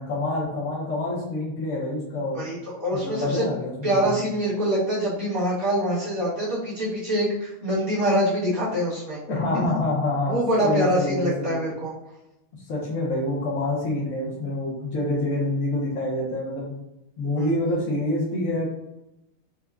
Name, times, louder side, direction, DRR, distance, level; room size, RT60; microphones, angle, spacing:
voice 1, 0.0-2.4 2.9-4.2 9.3-11.5 12.7-16.7 17.2-18.7, left 2 dB, 70° left, -7 dB, 1.2 m, -27 dB
voice 2, 2.3-3.4 3.8-9.2 9.5-9.7 10.2-11.9 17.4-17.6, equal, 50° right, -10 dB, 1.6 m, -25 dB
4.4 x 2.1 x 2.3 m, 0.89 s
omnidirectional pair, 1.5 m